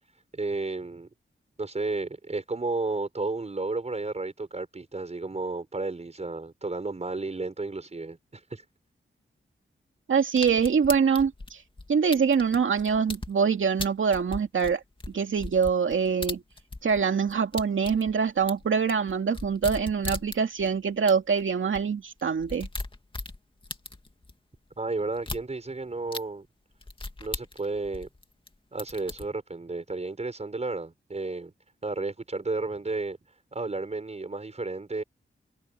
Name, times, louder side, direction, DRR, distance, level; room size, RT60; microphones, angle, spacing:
voice 1, 0.3-1.1 1.6-8.6 24.8-26.5 27.2-28.1 28.7-31.5 31.8-33.2 33.5-35.0, right 3 dB, 35° right, 6.1 m, -32 dB
voice 2, 10.1-11.6 11.9-14.8 15.1-16.4 16.8-22.7, right 6 dB, 90° right, 2.4 m, -24 dB
sound 1, 10.4-13.3 13.8-17.0 17.3-20.7 21.1-21.2 21.4-21.5 21.7-21.8 22.2-24.3 25.2-25.4 26.1-26.2 26.8-28.5 28.8-29.3, left 2 dB, 25° left, 2.3 m, -37 dB
wide cardioid pair, 115°, 20 cm